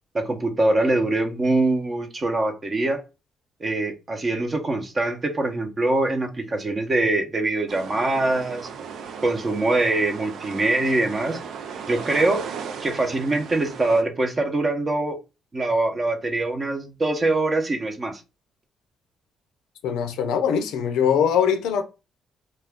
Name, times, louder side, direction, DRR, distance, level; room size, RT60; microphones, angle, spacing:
voice 1, 0.1-3.0 3.6-8.7 9.2-11.4 11.9-12.4 12.8-15.2 15.5-18.2, right 2 dB, 30° right, 0.7 m, -23 dB
sound 1, 7.7-14.0, right 6 dB, 70° right, 0.4 m, -36 dB
voice 2, 19.8-21.8, left 8 dB, 90° left, 0.5 m, -22 dB
2.4 x 2.3 x 3.4 m
cardioid pair, 90°, 0 cm